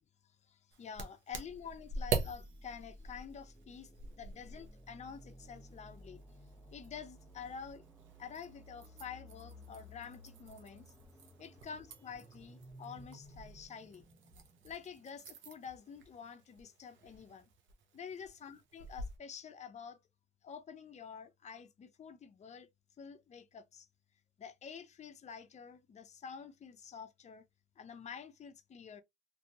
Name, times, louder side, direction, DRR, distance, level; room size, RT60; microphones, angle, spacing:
voice 1, 0.5-3.9 4.2-6.2 6.7-7.8 8.2-10.9 11.4-14.0 14.6-17.5 17.9-20.0 20.4-22.7 23.0-23.9 24.4-27.4 27.8-29.0, left 7 dB, 35° left, 0.5 m, -48 dB
sound 1, 0.7-19.2, right 4 dB, 70° right, 0.7 m, -45 dB
sound 2, 1.4-15.2, equal, 5° right, 0.9 m, -56 dB
2.8 x 2.6 x 2.3 m
cardioid pair, 90°, 20 cm